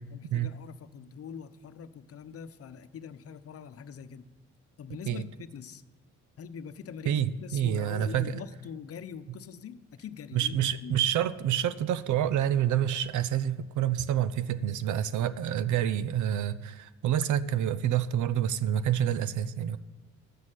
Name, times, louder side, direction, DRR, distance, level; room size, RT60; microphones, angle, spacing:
voice 1, 0.1-4.2 4.8-5.8 6.4-11.1, left 7 dB, 50° left, 11 dB, 0.8 m, -43 dB
voice 2, 7.1-8.3 10.3-19.8, right 10 dB, 75° right, 16 dB, 0.7 m, -28 dB
13.0 x 6.4 x 9.0 m, 1.2 s
cardioid pair, 90°, 30 cm